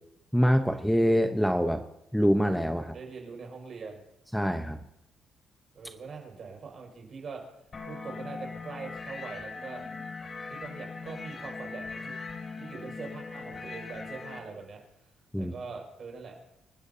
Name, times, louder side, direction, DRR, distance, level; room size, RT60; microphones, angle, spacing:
voice 1, 0.3-1.8 2.1-2.9 4.3-4.8 15.3-15.5, equal, ahead, 7 dB, 0.9 m, -24 dB
voice 2, 2.9-4.0 5.7-7.4 7.8-9.9 10.5-12.2 12.6-14.8 15.4-16.4, right 5 dB, 50° right, 1 dB, 5.6 m, -42 dB
sound 1, 7.7-14.4, left 4 dB, 40° left, 2.8 m, -40 dB
28.0 x 13.0 x 2.8 m, 0.86 s
cardioid pair, 90°, 0 cm